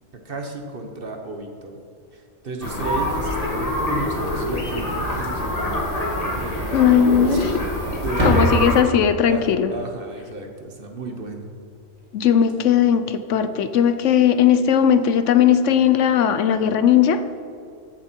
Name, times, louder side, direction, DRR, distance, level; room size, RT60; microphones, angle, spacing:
voice 1, 0.2-1.8 2.1-7.6 7.9-8.7 9.3-11.5, right 2 dB, 45° right, 4 dB, 1.3 m, -33 dB
sound 1, 2.6-8.8, left 1 dB, 30° left, 1.9 m, -25 dB
Slam, 5.0-5.6 5.9-6.0 6.5-6.6 7.4-7.7 8.0-9.3 12.0-12.1 12.3-12.5 14.0-14.2, right 1 dB, 30° right, 2.2 m, -25 dB
voice 2, 6.7-7.7 8.2-9.7 12.1-17.2, left 8 dB, 70° left, 10 dB, 0.9 m, -18 dB
14.5 x 7.4 x 4.5 m, 2.5 s
omnidirectional pair, 1.4 m